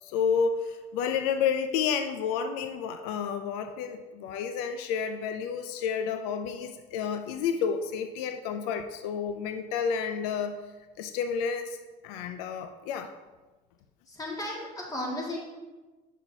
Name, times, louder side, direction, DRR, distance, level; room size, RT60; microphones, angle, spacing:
voice 1, 0.0-10.6 11.0-13.1, left 6 dB, 85° left, 8 dB, 0.4 m, -30 dB
voice 2, 14.1-15.4, left 1 dB, 20° left, -2 dB, 2.0 m, -34 dB
7.0 x 5.9 x 2.7 m, 1.2 s
supercardioid pair, 85°, 19 cm